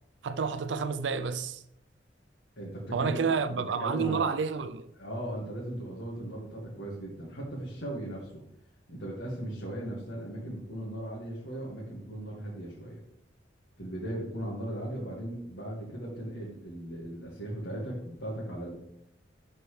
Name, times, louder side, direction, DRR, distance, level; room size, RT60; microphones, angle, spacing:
voice 1, 0.2-1.6 2.9-4.9, right 5 dB, 80° right, 0.4 m, -29 dB
voice 2, 2.6-4.3 5.0-8.4 8.9-13.0 13.8-18.7, right 1 dB, 75° left, 1.9 m, -38 dB
11.5 x 4.5 x 3.3 m
head